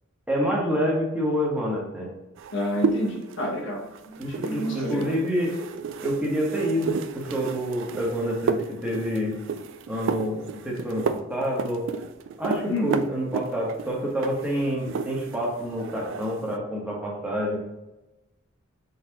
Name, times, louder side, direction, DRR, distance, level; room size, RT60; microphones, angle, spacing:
voice 1, 0.3-2.1 4.2-5.7 6.0-9.3 9.9-11.8 12.4-17.6, equal, 5° right, -3 dB, 1.2 m, -27 dB
sound 1, 2.4-15.5 15.7-16.4, right 5 dB, 65° right, 0.3 m, -32 dB
voice 2, 2.5-5.1 12.7-12.9, left 1 dB, 65° left, -2 dB, 1.2 m, -29 dB
4.1 x 4.0 x 2.9 m, 1.0 s
head